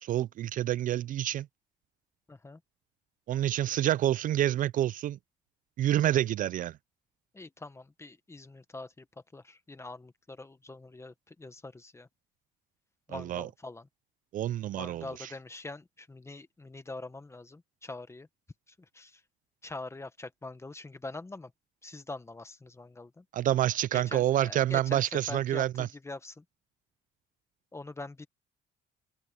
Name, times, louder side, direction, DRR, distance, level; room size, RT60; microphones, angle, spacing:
voice 1, 0.0-1.5 3.3-5.2 5.8-6.8 13.1-13.5 14.3-15.3 23.3-25.9, right 12 dB, 55° right, 0.4 m, -28 dB
voice 2, 2.3-2.6 7.3-9.0 9.3-12.1 13.1-13.9 14.7-18.3 18.9-19.2 19.6-21.5 21.8-23.2 23.9-26.4 27.7-28.3, left 2 dB, 15° left, 1.3 m, -44 dB
open air
cardioid pair, 100°, 16 cm